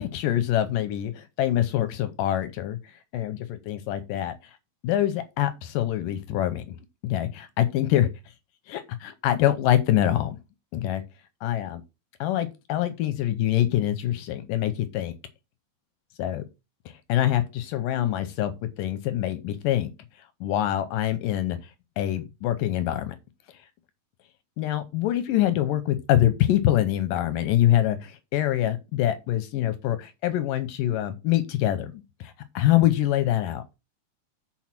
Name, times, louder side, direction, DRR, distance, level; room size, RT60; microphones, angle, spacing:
voice 1, 0.0-2.8 3.1-4.3 4.8-6.6 7.0-8.1 8.7-10.4 10.7-11.0 11.4-11.8 12.2-15.1 16.2-16.5 17.1-19.9 20.4-21.6 22.0-23.2 24.6-33.6, left 12 dB, 80° left, 2.0 m, -25 dB
7.1 x 4.5 x 5.9 m
omnidirectional pair, 4.5 m